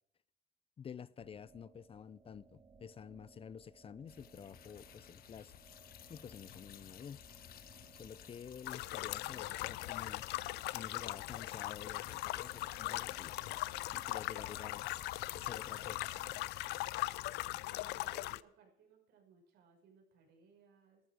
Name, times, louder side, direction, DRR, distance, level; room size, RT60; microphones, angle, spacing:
voice 1, 0.8-5.5 6.1-7.2 8.0-10.2 10.7-13.3 13.9-14.9 15.3-16.1, left 7 dB, 35° left, 0.5 m, -50 dB
sound 1, 1.2-16.4, right 4 dB, 25° right, 2.5 m, -63 dB
sound 2, 4.1-17.0, left 10 dB, 60° left, 1.4 m, -56 dB
voice 2, 8.0-8.4 16.9-21.0, right 5 dB, 75° right, 5.8 m, -65 dB
sound 3, 8.6-18.4, left 18 dB, 80° left, 0.5 m, -40 dB
13.5 x 13.0 x 4.9 m
cardioid pair, 110°, 17 cm